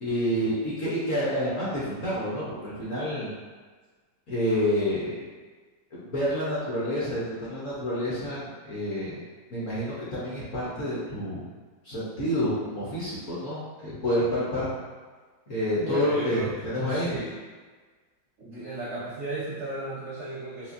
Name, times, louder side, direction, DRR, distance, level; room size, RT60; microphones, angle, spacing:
voice 1, 0.0-3.3 4.3-5.1 5.9-9.2 9.5-11.4 11.8-14.7 15.5-17.2, equal, 55° left, -9 dB, 1.0 m, -28 dB
voice 2, 15.7-16.5 16.9-17.4 18.4-20.7, right 2 dB, 65° right, -8 dB, 0.7 m, -35 dB
4.2 x 2.4 x 2.5 m, 1.4 s
omnidirectional pair, 2.1 m